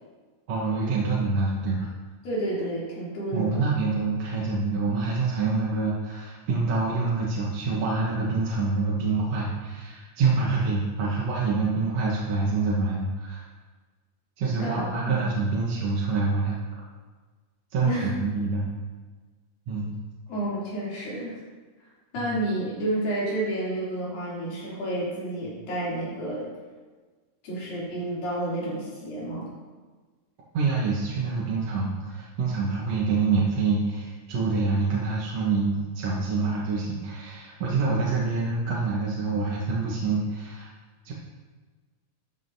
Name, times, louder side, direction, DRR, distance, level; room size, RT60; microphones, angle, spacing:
voice 1, 0.5-1.9 3.3-13.4 14.4-16.6 17.7-18.6 19.7-20.0 22.2-22.3 30.5-40.7 41.1-41.2, right 4 dB, 55° right, -5 dB, 2.0 m, -26 dB
voice 2, 2.2-3.6 14.6-15.3 17.8-18.1 20.3-21.4 22.1-26.5 27.4-29.5, right 1 dB, 80° left, -7 dB, 4.9 m, -30 dB
13.5 x 9.4 x 2.8 m, 1.4 s
omnidirectional pair, 4.0 m